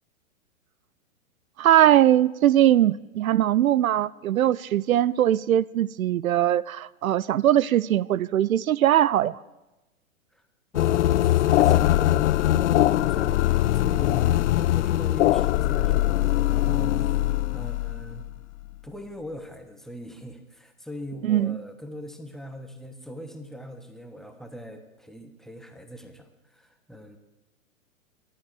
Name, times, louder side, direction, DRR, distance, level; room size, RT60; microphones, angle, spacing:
voice 1, 1.6-9.4 21.2-21.6, right 12 dB, 75° right, 21 dB, 0.5 m, -21 dB
sound 1, 10.7-18.7, left 14 dB, 60° left, 0.5 m, -22 dB
voice 2, 10.7-18.3 18.8-27.2, equal, ahead, 6 dB, 1.1 m, -40 dB
18.5 x 11.5 x 4.8 m, 1.0 s
hypercardioid pair, 120°, 42 cm